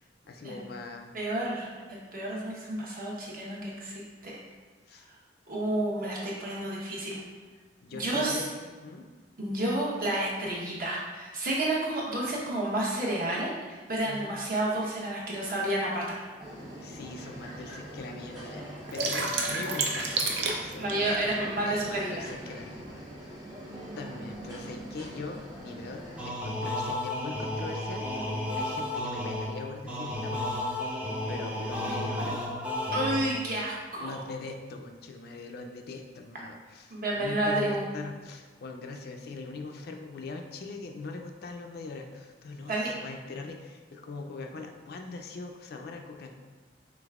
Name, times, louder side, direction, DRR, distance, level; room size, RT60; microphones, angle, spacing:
voice 1, 0.0-1.1 4.9-5.1 7.8-9.1 14.0-14.4 16.8-18.7 18.9-21.4 21.6-23.4 23.9-30.5 30.7-31.0 31.3-32.4 33.9-46.3, left 3 dB, 60° left, 3 dB, 0.4 m, -41 dB
voice 2, 1.1-4.4 5.5-7.2 7.9-8.4 9.4-16.2 20.8-22.3 32.9-34.2 36.9-37.8 42.7-42.9, right 1 dB, 55° right, -5 dB, 1.0 m, -30 dB
sound 1, 15.6-15.7 16.5-16.6 17.0-17.1 17.3-17.9 18.3-21.4, right 3 dB, 75° right, 0.5 m, -30 dB
sound 2, 16.4-26.3, equal, 25° right, 1.0 m, -43 dB
sound 3, 26.2-33.6, left 1 dB, 5° right, 0.4 m, -33 dB
5.1 x 3.3 x 2.4 m, 1.4 s
head